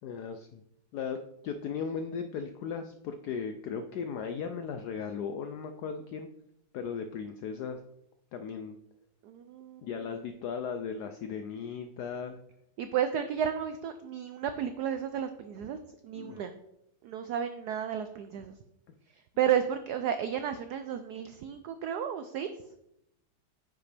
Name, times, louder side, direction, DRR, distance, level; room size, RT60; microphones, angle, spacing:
voice 1, 0.0-0.6 0.9-1.2 1.4-6.3 6.7-7.8 8.3-8.8 9.8-12.4 16.1-16.4, left 6 dB, 80° left, 7 dB, 0.9 m, -37 dB
voice 2, 9.2-9.8 12.8-15.8 16.0-16.5 17.0-18.5 19.4-22.5, right 9 dB, 85° right, 9 dB, 0.8 m, -32 dB
9.2 x 5.7 x 3.3 m, 0.80 s
omnidirectional pair, 2.2 m